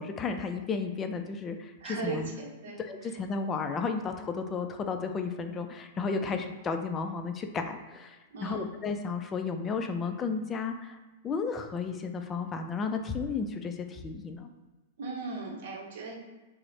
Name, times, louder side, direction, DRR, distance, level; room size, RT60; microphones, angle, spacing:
voice 1, 0.0-2.3 2.8-11.0 11.2-14.5, left 4 dB, 25° left, 6 dB, 0.3 m, -33 dB
voice 2, 1.8-3.1 6.2-6.4 8.3-8.7 15.0-16.1, right 3 dB, 65° right, -1 dB, 0.7 m, -38 dB
3.1 x 2.0 x 3.8 m, 1.2 s
hypercardioid pair, 110°, 0 cm